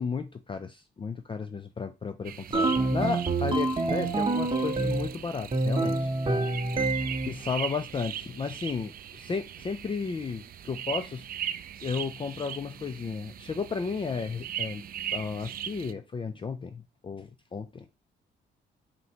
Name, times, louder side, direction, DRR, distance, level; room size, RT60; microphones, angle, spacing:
voice 1, 0.0-6.1 7.2-11.3 11.8-14.8 15.1-17.9, left 5 dB, 25° left, 0.4 m, -33 dB
sound 1, 2.2-15.9, right 10 dB, 50° right, 0.4 m, -40 dB
sound 2, 2.5-5.1 5.5-7.4, right 3 dB, 25° right, 0.8 m, -27 dB
5.1 x 2.8 x 2.9 m
cardioid pair, 90°, 20 cm